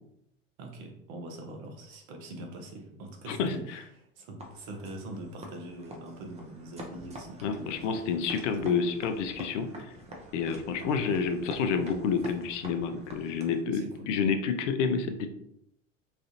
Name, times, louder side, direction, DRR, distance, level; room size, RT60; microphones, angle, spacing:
voice 1, 0.6-7.8 8.5-8.8 13.7-14.1, right 1 dB, 55° right, 2 dB, 0.9 m, -43 dB
voice 2, 3.3-3.8 7.4-9.9 10.3-15.3, left 5 dB, 70° left, 7 dB, 0.5 m, -29 dB
sound 1, 4.4-13.7, equal, 15° right, 0.6 m, -46 dB
3.2 x 2.4 x 2.6 m, 0.78 s
hypercardioid pair, 80°, 38 cm